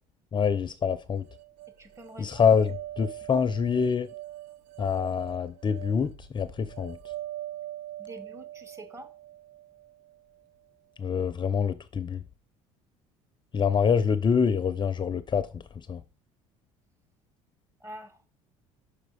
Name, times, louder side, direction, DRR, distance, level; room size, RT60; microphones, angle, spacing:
voice 1, 0.3-1.3 2.2-4.1 4.8-7.0 11.0-12.2 13.5-16.0, left 6 dB, 30° left, 0.5 m, -26 dB
sound 1, 1.2-10.4, right 14 dB, 70° right, 0.8 m, -43 dB
voice 2, 1.8-2.5 8.0-9.1 17.8-18.2, right 1 dB, 20° right, 1.6 m, -46 dB
6.0 x 4.9 x 5.0 m
supercardioid pair, 80°, 16 cm